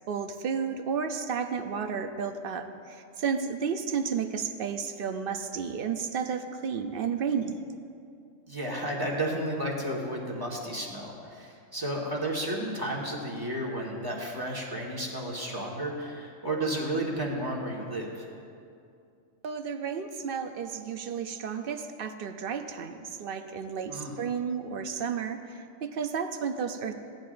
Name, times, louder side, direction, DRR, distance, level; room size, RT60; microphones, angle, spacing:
voice 1, 0.1-7.6 19.4-26.9, right 6 dB, 60° right, 7 dB, 0.6 m, -32 dB
voice 2, 8.5-18.3 23.9-24.1, right 1 dB, 15° right, -3 dB, 1.5 m, -32 dB
16.5 x 10.5 x 2.5 m, 2.5 s
omnidirectional pair, 1.4 m